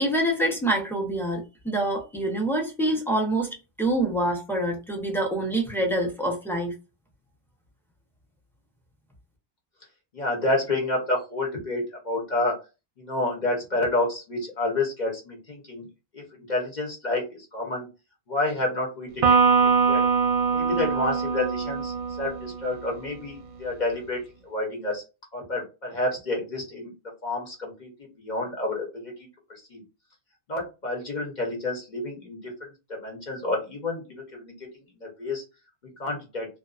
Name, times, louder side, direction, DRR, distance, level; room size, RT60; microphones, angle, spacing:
voice 1, 0.0-3.5 3.8-6.7, right 1 dB, 5° left, 0.5 m, -26 dB
voice 2, 10.1-12.5 13.0-15.9 16.1-17.9 18.3-19.2 19.6-20.0 20.5-25.0 25.3-26.9 27.2-27.9 28.2-29.1 29.7-29.8 30.5-32.4 33.0-34.5 35.0-35.4 36.0-36.5, left 2 dB, 45° left, 1.0 m, -29 dB
Electric guitar, 19.2-22.8, right 5 dB, 60° right, 0.7 m, -22 dB
2.4 x 2.2 x 2.3 m
omnidirectional pair, 1.0 m